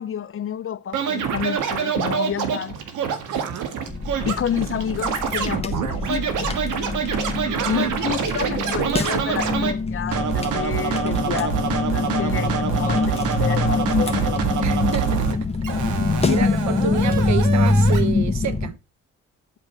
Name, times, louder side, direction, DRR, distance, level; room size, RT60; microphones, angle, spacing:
voice 1, 0.0-2.8 4.2-6.6 7.6-14.5 16.0-16.5, left 8 dB, 45° left, 0.9 m, -29 dB
Scratching (performance technique), 0.9-9.7 10.1-15.3 15.6-18.0, right 7 dB, 85° right, 1.8 m, -26 dB
voice 2, 1.4-1.7 3.3-3.7 7.4-8.0 8.2-9.2 14.6-15.3 15.8-16.0 16.3-18.8, right 8 dB, 65° right, 1.1 m, -29 dB
sound 1, 3.9-18.7, left 3 dB, 20° left, 1.5 m, -24 dB
8.6 x 6.9 x 5.7 m
cardioid pair, 90°, 30 cm